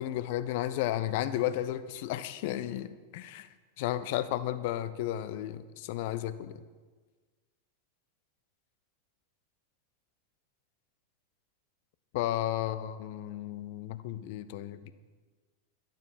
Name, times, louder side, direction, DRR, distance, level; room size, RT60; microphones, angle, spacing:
voice 1, 0.0-3.5 3.8-6.6 12.1-14.9, left 12 dB, 50° left, 14 dB, 0.7 m, -33 dB
12.0 x 12.0 x 5.7 m, 1.4 s
figure-of-eight pair, 90°, 0 cm